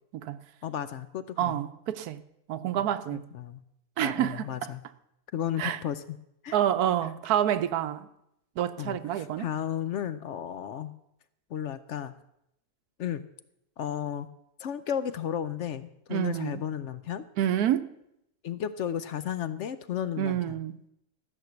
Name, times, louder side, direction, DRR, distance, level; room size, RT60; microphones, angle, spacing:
voice 1, 0.6-1.6 2.8-3.6 4.0-4.8 5.3-6.2 6.4-6.6 8.8-10.9 11.5-12.1 13.0-13.2 13.8-14.3 14.6-17.3 18.4-20.6, left 9 dB, 65° left, 0.8 m, -34 dB
voice 2, 1.4-2.2 2.5-3.2 4.0-4.7 5.6-5.8 6.5-8.1 8.6-9.5 16.1-16.6 17.4-17.9 20.2-20.7, right 11 dB, 85° right, 1.2 m, -28 dB
13.5 x 6.4 x 7.9 m
omnidirectional pair, 1.6 m